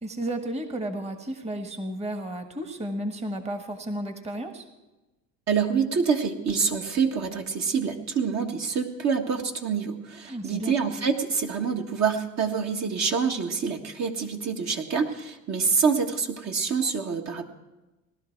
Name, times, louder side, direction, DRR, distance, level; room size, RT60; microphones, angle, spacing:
voice 1, 0.0-4.7 10.3-10.7, right 1 dB, 15° right, 6 dB, 1.4 m, -33 dB
voice 2, 5.5-17.5, right 6 dB, 45° right, 2 dB, 1.7 m, -26 dB
18.0 x 12.0 x 4.6 m, 1.1 s
supercardioid pair, 90°, 37 cm